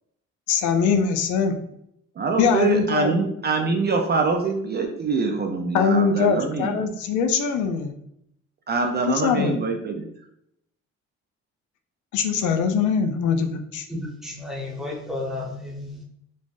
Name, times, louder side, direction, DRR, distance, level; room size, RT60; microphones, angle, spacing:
voice 1, 0.5-1.6 2.4-3.1 5.7-7.9 9.1-9.6 12.1-13.9, left 6 dB, 75° left, 6 dB, 0.5 m, -22 dB
voice 2, 2.2-6.8 8.7-10.1, right 4 dB, 35° right, 3 dB, 0.4 m, -24 dB
voice 3, 13.9-16.0, left 2 dB, ahead, -3 dB, 1.0 m, -32 dB
3.3 x 2.1 x 2.5 m, 0.75 s
cardioid pair, 90°, 30 cm